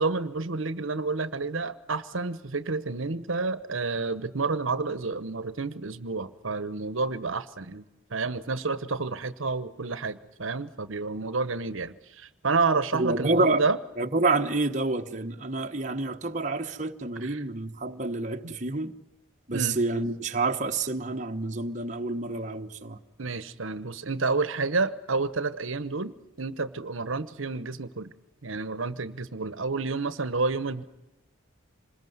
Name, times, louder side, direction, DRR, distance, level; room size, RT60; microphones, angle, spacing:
voice 1, 0.0-7.8 8.1-13.8 17.2-17.4 18.4-18.5 19.5-19.8 23.2-28.1 28.4-30.8, right 3 dB, 75° right, 1.1 m, -30 dB
voice 2, 12.9-13.6 14.0-18.9 19.5-23.0, right 3 dB, 35° right, 1.1 m, -28 dB
26.5 x 21.0 x 9.5 m
head